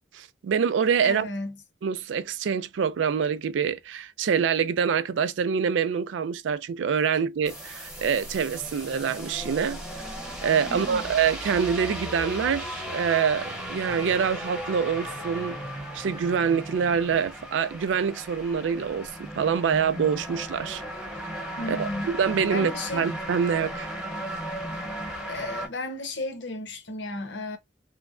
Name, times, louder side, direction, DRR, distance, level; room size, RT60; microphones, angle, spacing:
voice 1, 0.1-1.3 1.8-9.8 10.4-15.6 15.9-20.8 21.7-23.9, right 7 dB, 80° right, 0.4 m, -25 dB
voice 2, 1.0-1.6 10.7-11.0 21.6-22.1 22.5-23.1 25.3-27.6, left 2 dB, 75° left, 0.8 m, -34 dB
sound 1, 7.4-25.7, equal, 5° right, 1.0 m, -36 dB
3.2 x 2.1 x 2.4 m
head